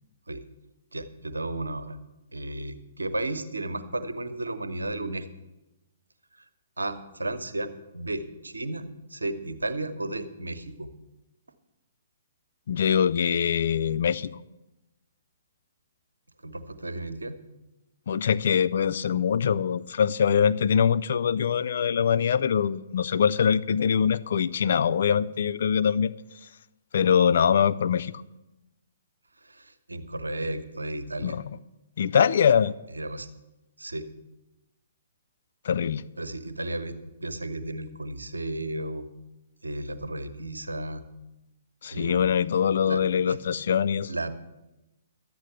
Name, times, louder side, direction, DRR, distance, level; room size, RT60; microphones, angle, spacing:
voice 1, 0.9-2.0 2.3-5.3 6.8-7.7 7.9-10.9 16.4-17.4 29.4-31.4 32.9-33.3 33.8-34.1 36.2-39.1 39.6-41.0 41.9-42.3 42.8-43.4 44.1-44.3, right 1 dB, 80° right, 9 dB, 1.0 m, -33 dB
voice 2, 12.7-14.3 18.1-26.1 26.9-28.1 31.2-31.4 32.0-32.7 35.7-36.0 41.8-44.1, left 7 dB, 55° left, 14 dB, 0.5 m, -23 dB
12.0 x 8.5 x 6.8 m, 0.97 s
figure-of-eight pair, 125°, 0 cm